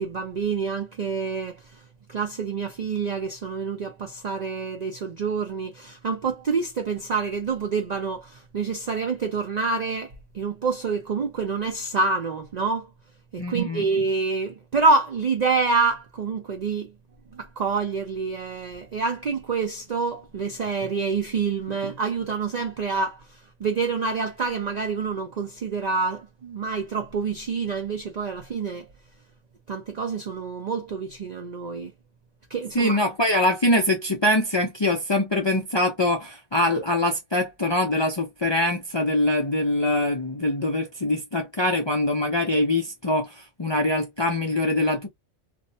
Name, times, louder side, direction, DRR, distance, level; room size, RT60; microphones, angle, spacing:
voice 1, 0.0-1.8 2.1-12.9 13.3-16.9 17.3-28.9 29.7-31.9 32.5-33.0, right 4 dB, 60° right, 0.4 m, -27 dB
voice 2, 13.4-13.8 32.7-45.1, left 1 dB, 40° left, 0.4 m, -23 dB
2.5 x 2.1 x 2.6 m
omnidirectional pair, 1.2 m